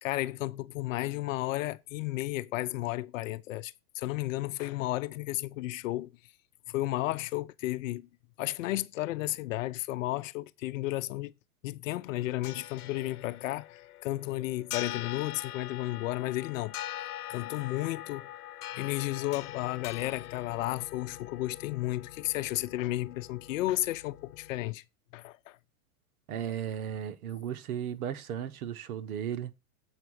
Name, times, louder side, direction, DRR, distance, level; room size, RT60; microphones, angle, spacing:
voice 1, 0.0-6.1 6.7-8.1 8.4-11.3 11.6-16.7 17.3-18.3 18.8-24.8 25.1-25.6, left 17 dB, 60° left, 0.8 m, -33 dB
sound 1, 12.1-24.7, left 13 dB, 85° left, 0.9 m, -43 dB
voice 2, 26.3-29.5, right 9 dB, 75° right, 1.2 m, -35 dB
8.0 x 4.8 x 6.3 m
supercardioid pair, 145°, 44 cm